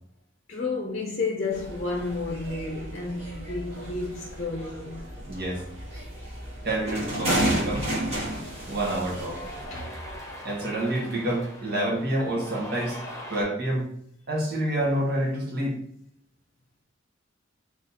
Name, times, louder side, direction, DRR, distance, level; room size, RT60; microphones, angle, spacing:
voice 1, 0.5-5.1 7.4-7.5 9.7-10.0, left 3 dB, 40° left, 0.7 m, -31 dB
sound 1, 1.5-9.6, right 1 dB, 30° right, 1.8 m, -32 dB
voice 2, 5.3-5.6 6.6-7.9 8.7-9.4 10.4-13.0 13.3-13.9 14.3-15.8, right 1 dB, 55° right, 1.5 m, -28 dB
Cheering, 7.5-13.4, left 1 dB, 15° left, 1.2 m, -42 dB
3.6 x 3.2 x 4.1 m
head